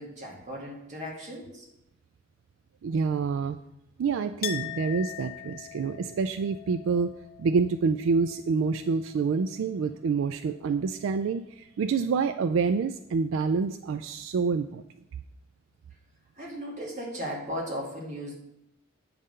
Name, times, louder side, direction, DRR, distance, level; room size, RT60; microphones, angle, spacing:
voice 1, 0.0-1.7 16.4-18.3, equal, 35° right, -2 dB, 2.0 m, -36 dB
voice 2, 2.8-3.6 4.0-7.1 7.4-14.8, right 5 dB, 70° right, 9 dB, 0.3 m, -27 dB
Chink clink, 4.4-9.9 10.2-11.1, left 12 dB, 50° left, 0.5 m, -42 dB
8.7 x 3.6 x 6.6 m, 0.81 s
head